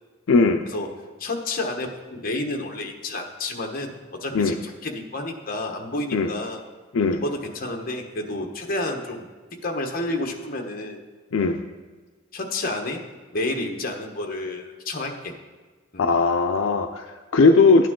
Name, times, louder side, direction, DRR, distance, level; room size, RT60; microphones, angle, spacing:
voice 1, 0.3-0.6 4.3-4.6 6.1-6.3 6.9-7.2 11.3-11.6 16.0-17.9, left 4 dB, 80° left, 5 dB, 0.5 m, -18 dB
voice 2, 1.2-3.9 4.2-6.6 7.2-9.3 9.6-11.0 12.3-13.0 13.3-15.3 15.9-16.1, left 2 dB, 45° left, 3 dB, 1.1 m, -30 dB
12.0 x 9.2 x 3.7 m, 1.4 s
head